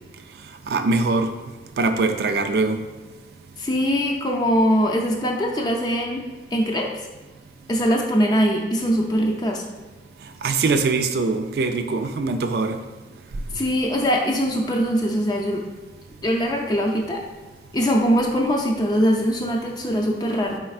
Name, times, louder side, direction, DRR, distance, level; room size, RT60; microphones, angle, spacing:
voice 1, 0.7-1.3 1.8-2.8 10.4-12.8, right 3 dB, 65° right, 7 dB, 0.3 m, -22 dB
voice 2, 3.6-6.9 7.7-9.6 13.5-15.6 16.2-17.2 17.7-20.6, equal, 25° left, 1 dB, 0.5 m, -22 dB
4.3 x 4.2 x 2.4 m, 1.3 s
head